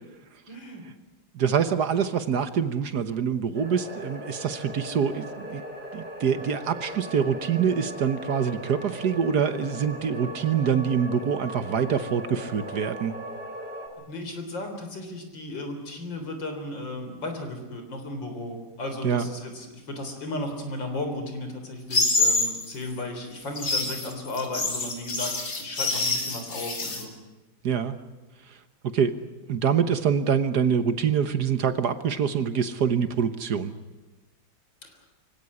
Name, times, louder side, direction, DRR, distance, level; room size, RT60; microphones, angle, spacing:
voice 1, 0.5-0.8 14.1-27.1 34.8-34.9, left 1 dB, 70° left, 5 dB, 4.4 m, -35 dB
voice 2, 1.3-5.6 5.9-13.1 19.0-19.3 27.6-27.9 28.5-28.6 28.8-29.2 29.5-33.7, right 7 dB, 60° right, 11 dB, 1.6 m, -25 dB
sound 1, 3.5-13.9, equal, 5° right, 5.6 m, -38 dB
sound 2, 21.9-22.6 23.4-27.0, left 3 dB, 45° left, 3.2 m, -26 dB
24.5 x 16.5 x 9.8 m, 1.1 s
omnidirectional pair, 2.1 m